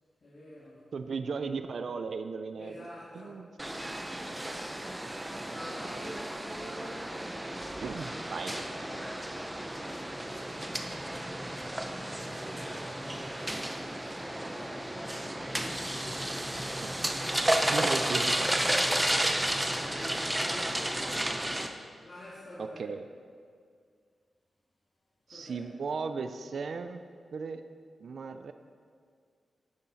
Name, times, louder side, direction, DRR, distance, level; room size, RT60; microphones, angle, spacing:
voice 1, 0.2-0.9 2.6-4.5 5.5-7.5 8.3-10.3 14.1-17.0 18.8-19.2 19.7-22.9 25.3-25.6, left 1 dB, 50° left, -7 dB, 2.1 m, -49 dB
voice 2, 0.9-2.7 3.1-3.5 7.8-8.5 16.8-16.9 17.7-18.3 22.6-23.0 25.3-27.0 27.3-27.6 28.0-28.5, right 5 dB, 65° right, 9 dB, 0.5 m, -36 dB
sound 1, 3.6-21.7, right 1 dB, 10° right, 0.7 m, -32 dB
10.5 x 9.7 x 4.0 m, 2.1 s
wide cardioid pair, 110°, 0 cm